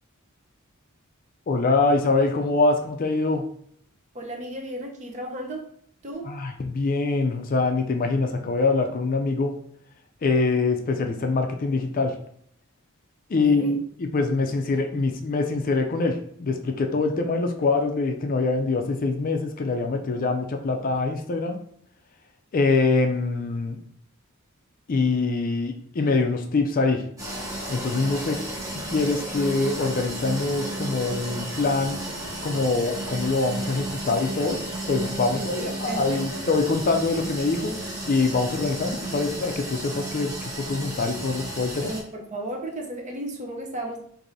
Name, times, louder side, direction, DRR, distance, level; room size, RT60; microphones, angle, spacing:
voice 1, 1.5-3.5 6.2-9.6 10.2-12.1 13.3-21.6 22.5-23.8 24.9-27.0 27.7-28.4 28.7-32.0 32.4-34.6 34.9-41.9, left 3 dB, 40° left, 4 dB, 0.4 m, -24 dB
voice 2, 4.1-5.6 6.0-6.3 13.5-13.7 35.5-36.2 41.8-44.0, right 1 dB, 35° right, 1 dB, 0.7 m, -34 dB
sound 1, 27.2-42.0, right 1 dB, 15° right, 1.0 m, -33 dB
4.7 x 2.6 x 2.6 m, 0.64 s
head